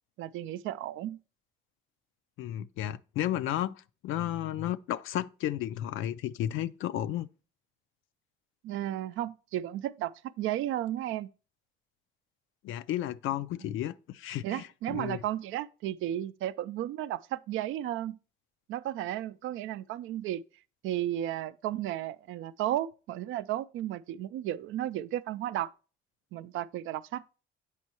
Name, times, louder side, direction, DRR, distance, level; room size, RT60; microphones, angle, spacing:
voice 1, 0.2-1.2 8.6-10.1 10.4-11.3 14.4-18.2 18.7-20.4 20.8-25.7 26.3-27.2, right 13 dB, 85° right, 0.4 m, -33 dB
voice 2, 2.4-7.3 12.6-15.2, left 12 dB, 85° left, 0.4 m, -33 dB
8.2 x 5.4 x 2.9 m
cardioid pair, 90°, 20 cm